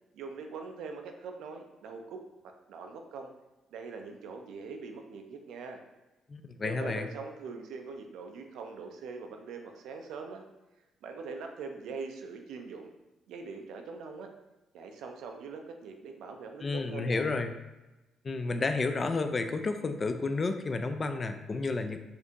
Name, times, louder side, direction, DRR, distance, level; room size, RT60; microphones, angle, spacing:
voice 1, 0.1-3.3 3.7-5.8 6.6-10.4 11.0-12.9 13.3-14.3 14.7-17.2, right 4 dB, 85° right, 4 dB, 0.4 m, -42 dB
voice 2, 6.3-7.1 16.6-17.5 18.2-22.0, left 3 dB, 35° left, 7 dB, 0.3 m, -31 dB
4.2 x 2.6 x 2.9 m, 1.0 s
cardioid pair, 90°, 0 cm